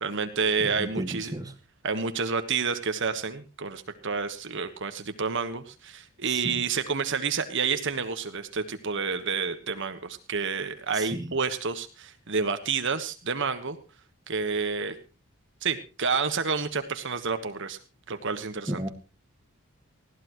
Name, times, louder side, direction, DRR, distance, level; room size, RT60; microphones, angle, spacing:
voice 1, 0.0-1.3 1.8-13.8 14.3-14.9 15.6-17.8 18.1-18.8, right 5 dB, 55° right, 9 dB, 1.4 m, -29 dB
voice 2, 0.6-1.5 6.3-6.6 10.9-11.3 18.7-18.9, right 1 dB, 15° right, 7 dB, 1.7 m, -34 dB
20.0 x 15.0 x 3.1 m, 0.32 s
head